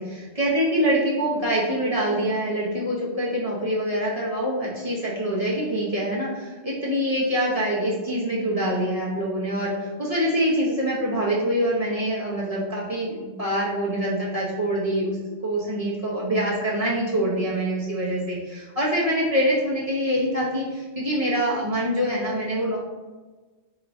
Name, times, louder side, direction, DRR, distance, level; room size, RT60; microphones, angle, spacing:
voice 1, 0.0-22.8, equal, 35° right, -7 dB, 0.8 m, -25 dB
4.4 x 3.0 x 2.5 m, 1.3 s
omnidirectional pair, 1.3 m